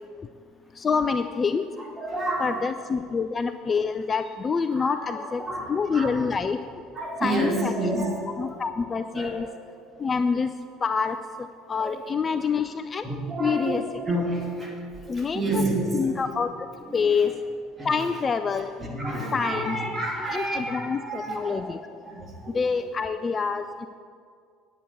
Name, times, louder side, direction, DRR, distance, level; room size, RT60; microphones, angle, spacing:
voice 1, 0.8-1.7 2.4-5.4 5.7-6.6 7.2-8.0 8.4-9.5 10.0-10.5 10.8-11.2 11.7-13.1 13.4-13.8 15.1-15.6 15.9-16.5 16.9-17.3 17.8-18.7 19.3-19.8 20.3-21.8 22.5-23.9, left 5 dB, 30° left, 10 dB, 0.4 m, -26 dB
voice 2, 1.8-2.5 4.7-6.1 6.9-8.6 9.1-9.4 10.0-10.1 11.8-12.0 13.0-14.8 15.1-16.1 16.9-17.3 17.8-17.9 18.8-21.8 22.0-22.6, right 1 dB, 20° right, -1 dB, 3.0 m, -30 dB
9.8 x 8.4 x 6.8 m, 2.2 s
figure-of-eight pair, 60°, 0 cm